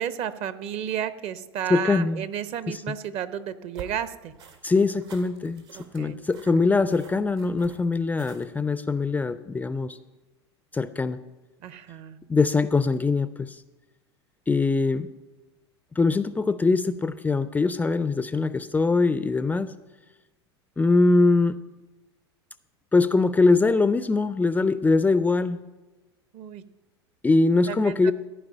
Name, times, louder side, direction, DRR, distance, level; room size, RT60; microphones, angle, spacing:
voice 1, 0.0-4.3 5.7-6.2 11.6-12.2 26.3-26.6 27.7-28.1, right 9 dB, 45° right, 14 dB, 0.8 m, -32 dB
voice 2, 1.7-2.2 2.7-2.8 4.6-5.6 5.9-10.0 10.7-11.2 12.3-13.6 14.5-15.1 16.0-19.7 20.8-21.6 22.9-25.6 27.2-28.1, left 3 dB, 10° left, 13 dB, 0.4 m, -22 dB
sound 1, 3.7-8.7, right 7 dB, 75° right, 2.2 m, -47 dB
14.5 x 4.9 x 8.7 m, 1.1 s
hypercardioid pair, 90°, 14 cm